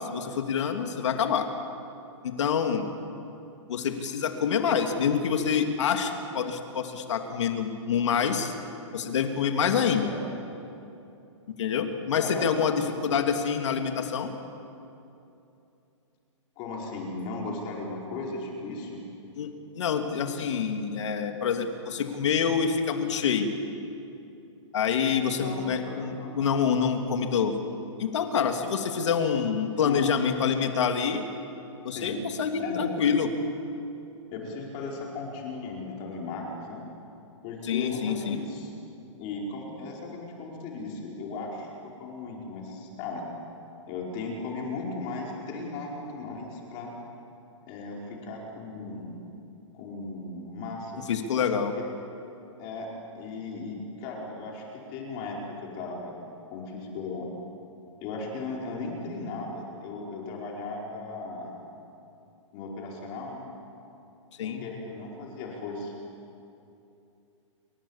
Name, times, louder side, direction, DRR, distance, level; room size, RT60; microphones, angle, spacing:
voice 1, 0.0-1.5 2.2-2.9 3.7-8.5 8.9-10.1 11.6-14.3 19.4-23.5 24.7-27.6 28.0-31.2 31.8-33.3 37.6-38.4 51.1-51.7 64.4-64.6, left 7 dB, 65° left, 5 dB, 2.8 m, -26 dB
voice 2, 12.2-12.8 16.6-19.0 25.3-26.4 28.4-29.1 29.8-30.0 31.9-32.2 32.6-33.0 34.3-36.8 37.4-38.7 39.2-43.3 43.9-46.9 47.6-49.2 49.7-51.0 52.6-52.9 53.1-56.2 56.5-57.3 58.0-61.6 62.5-63.5 64.4-65.9, left 3 dB, 30° left, -2 dB, 4.9 m, -37 dB
28.5 x 25.0 x 7.4 m, 2.8 s
hypercardioid pair, 155°, 16 cm